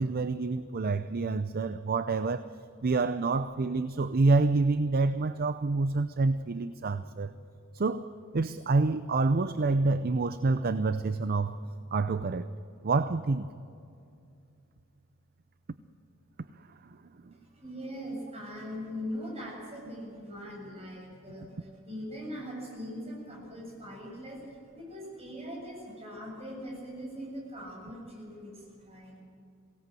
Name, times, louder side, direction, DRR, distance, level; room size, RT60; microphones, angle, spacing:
voice 1, 0.0-2.5 2.8-7.3 7.7-8.1 8.3-11.6 11.9-12.5 12.8-13.5 17.3-17.4, right 3 dB, 45° right, 12 dB, 0.6 m, -27 dB
voice 2, 17.3-29.2, equal, 30° right, -2 dB, 7.6 m, -41 dB
23.0 x 17.5 x 7.7 m, 2.6 s
head